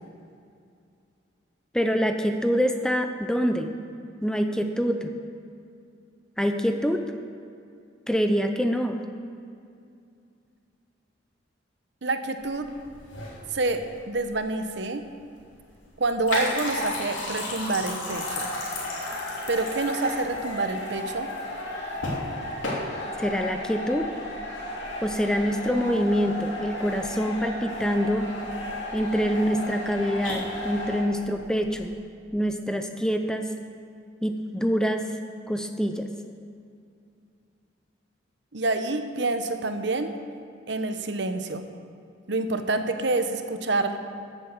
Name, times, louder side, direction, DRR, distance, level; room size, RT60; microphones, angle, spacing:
voice 1, 1.7-3.7 4.2-5.1 6.4-7.1 8.1-9.0 23.2-24.1 25.0-28.3 28.9-32.0 32.3-33.5 34.2-35.1 35.5-36.1, equal, 5° left, 6 dB, 0.5 m, -25 dB
voice 2, 12.0-12.7 13.5-15.0 16.0-18.5 19.5-21.3 38.5-40.1 40.7-41.6 42.3-44.0, right 2 dB, 65° right, 8 dB, 0.9 m, -27 dB
sound 1, 12.4-31.9, left 2 dB, 90° left, 3.0 m, -36 dB
sound 2, 18.1-31.0, left 1 dB, 65° left, 3.0 m, -35 dB
13.5 x 8.3 x 7.1 m, 2.4 s
head